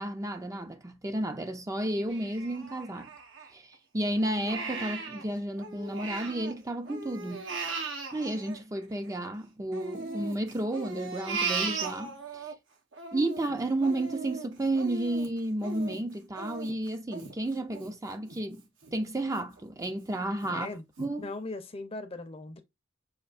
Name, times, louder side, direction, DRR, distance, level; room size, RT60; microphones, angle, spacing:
voice 1, 0.0-3.1 3.5-7.5 8.1-12.5 13.1-20.7 21.0-21.3, right 1 dB, 20° right, 0.5 m, -32 dB
Crying sobbing, 2.1-3.7 4.2-6.5 6.8-9.3 9.7-12.5 12.9-18.4 18.8-18.9 19.4-19.9 20.4-20.5 21.0-21.1, right 4 dB, 85° right, 1.3 m, -37 dB
voice 2, 20.5-20.8 21.2-22.6, left 2 dB, 30° left, 0.7 m, -39 dB
6.4 x 2.6 x 2.4 m
head